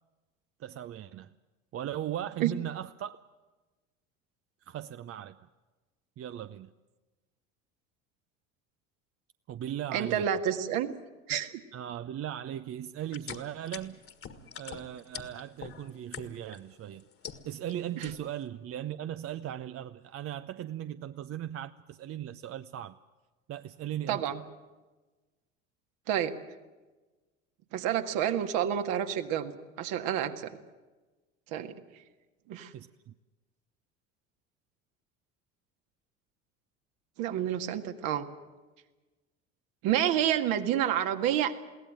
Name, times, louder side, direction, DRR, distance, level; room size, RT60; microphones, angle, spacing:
voice 1, 0.6-1.3 1.7-3.2 4.7-5.4 6.2-6.7 9.5-10.3 11.3-14.0 14.6-17.0 17.4-23.0 23.5-24.3 32.7-33.1, right 11 dB, 35° right, 12 dB, 0.7 m, -38 dB
voice 2, 9.9-10.9 11.3-11.5 18.0-18.1 24.1-24.4 26.1-26.3 27.7-30.5 31.5-31.8 32.5-32.7 37.2-38.3 39.8-41.5, right 10 dB, 60° right, 7 dB, 1.9 m, -29 dB
sound 1, 13.0-16.6 17.0-17.7 18.0-18.4, left 7 dB, 35° left, 1.8 m, -43 dB
22.5 x 17.0 x 9.2 m, 1.2 s
hypercardioid pair, 70°, 38 cm